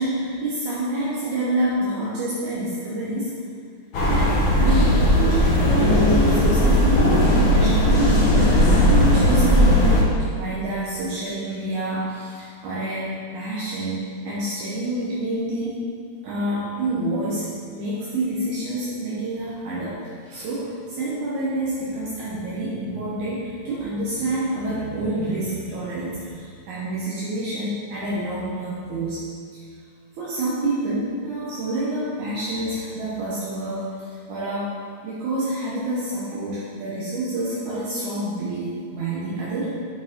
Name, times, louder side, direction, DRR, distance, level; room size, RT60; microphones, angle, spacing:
voice 1, 0.0-3.3 4.1-10.0 10.3-15.8 16.2-29.2 29.5-29.6 30.2-34.7 35.0-39.7, right 1 dB, 75° right, -8 dB, 2.3 m, -27 dB
sound 1, 3.9-10.0, left 1 dB, 55° left, 1.8 m, -17 dB
7.7 x 4.8 x 3.6 m, 2.1 s
omnidirectional pair, 3.5 m